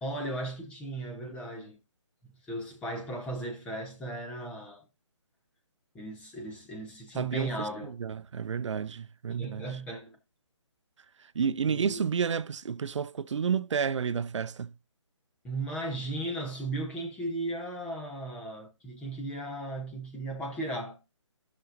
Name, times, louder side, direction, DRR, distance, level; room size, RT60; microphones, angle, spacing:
voice 1, 0.0-1.8 2.2-4.8 5.9-7.9 9.3-10.2 11.7-12.0 15.4-21.0, right 1 dB, 5° left, 0.8 m, -36 dB
voice 2, 7.2-9.7 11.2-14.7, right 6 dB, 70° right, 0.5 m, -31 dB
14.0 x 6.1 x 2.5 m
hypercardioid pair, 160°, 16 cm